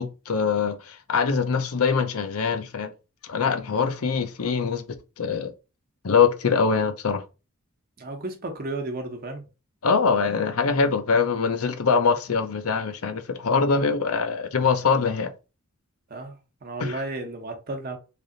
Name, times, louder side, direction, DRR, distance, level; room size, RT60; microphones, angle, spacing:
voice 1, 0.0-2.9 3.3-5.5 6.0-7.2 9.8-15.3 16.8-17.0, left 5 dB, 80° left, 0.6 m, -23 dB
voice 2, 8.0-9.4 13.7-13.9 16.1-18.0, right 2 dB, 45° right, 0.9 m, -33 dB
3.4 x 2.6 x 3.8 m
head